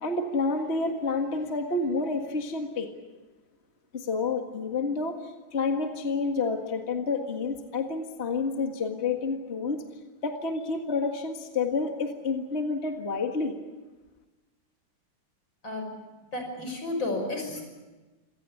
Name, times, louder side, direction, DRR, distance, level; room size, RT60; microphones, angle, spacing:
voice 1, 0.0-2.9 3.9-9.8 10.2-13.6, left 4 dB, 35° left, 4 dB, 1.9 m, -29 dB
voice 2, 16.3-17.6, left 2 dB, 75° left, 4 dB, 6.6 m, -32 dB
26.5 x 18.0 x 8.4 m, 1.2 s
omnidirectional pair, 2.1 m